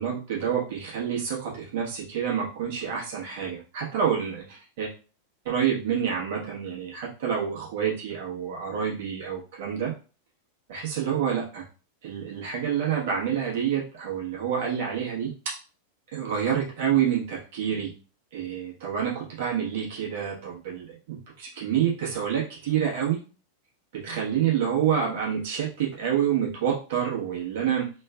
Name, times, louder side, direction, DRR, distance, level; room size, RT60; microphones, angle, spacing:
voice 1, 0.0-4.9 5.4-9.9 10.7-11.6 12.0-15.3 16.1-17.9 18.3-23.2 23.9-27.9, right 8 dB, 55° right, -4 dB, 1.2 m, -28 dB
3.2 x 3.1 x 2.3 m, 0.36 s
figure-of-eight pair, 90°, 0 cm